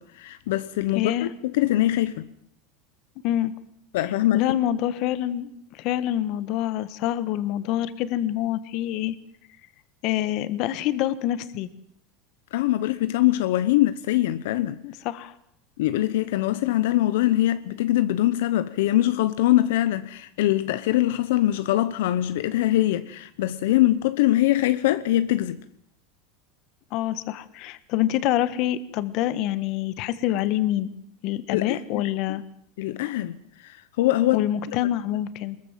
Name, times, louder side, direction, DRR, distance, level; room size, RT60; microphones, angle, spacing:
voice 1, 0.0-2.3 3.9-4.4 12.5-14.8 15.8-25.6 31.5-32.4 32.8-34.5, left 14 dB, 75° left, 0.9 m, -23 dB
voice 2, 0.9-1.3 3.2-3.5 4.3-9.1 10.0-11.7 14.8-15.3 26.9-30.9 31.2-32.4 34.3-35.6, left 13 dB, 45° left, 1.5 m, -26 dB
23.0 x 21.5 x 7.5 m
supercardioid pair, 160°, 0 cm